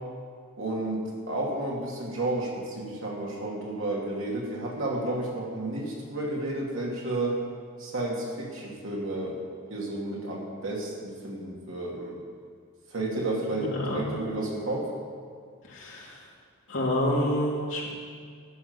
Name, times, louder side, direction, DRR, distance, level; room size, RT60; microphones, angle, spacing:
voice 1, 0.6-7.4 7.8-9.4 9.7-12.2 12.9-14.9, right 2 dB, 70° right, -3 dB, 2.4 m, -31 dB
voice 2, 13.6-14.0 15.7-16.2 16.7-17.9, left 1 dB, 60° left, -5 dB, 3.1 m, -28 dB
12.0 x 6.5 x 8.1 m, 2.1 s
head